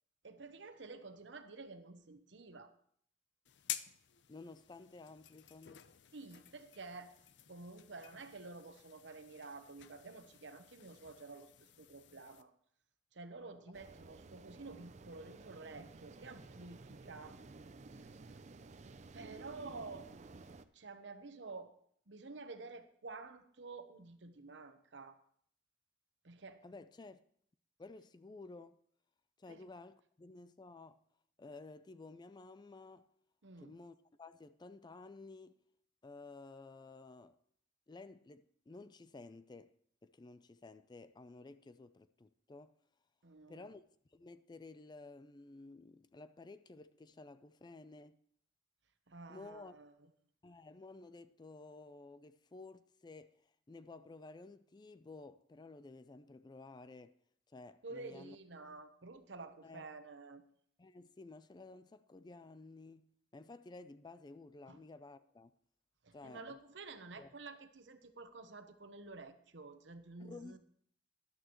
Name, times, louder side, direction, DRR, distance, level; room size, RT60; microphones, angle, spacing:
voice 1, 0.2-2.7 6.1-7.2 7.5-12.5 13.1-17.4 18.0-18.4 19.1-20.1 20.7-21.8 22.1-25.2 26.2-26.6 29.5-29.6 33.4-33.8 43.2-43.7 49.1-49.9 57.8-60.4 64.7-64.8 66.0-70.6, right 3 dB, 75° right, 0.9 m, -50 dB
sound 1, 3.4-12.4, left 11 dB, 70° left, 0.6 m, -51 dB
voice 2, 4.3-5.9 26.6-27.2 27.8-28.8 29.4-31.0 31.4-33.1 33.6-35.6 36.0-37.4 37.9-39.7 40.0-42.7 43.5-43.8 44.1-48.2 49.3-49.8 50.4-53.4 53.7-57.2 57.5-58.4 59.6-59.8 60.8-65.5 66.1-66.6 67.1-67.3 70.2-70.6, left 3 dB, 25° left, 0.4 m, -53 dB
sound 2, 13.7-20.7, right 3 dB, 40° right, 0.5 m, -54 dB
13.0 x 11.0 x 3.0 m
head